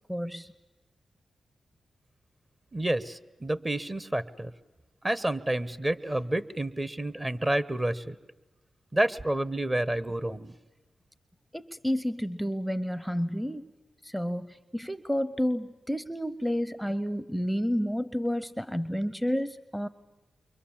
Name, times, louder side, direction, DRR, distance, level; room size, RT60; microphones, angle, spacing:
voice 1, 0.1-0.5 11.5-13.7 14.0-19.9, equal, ahead, 15 dB, 0.7 m, -30 dB
voice 2, 2.7-4.5 5.0-8.2 8.9-10.6, right 1 dB, 25° right, 15 dB, 1.1 m, -29 dB
29.0 x 24.0 x 7.3 m, 1.2 s
cardioid pair, 45°, 0 cm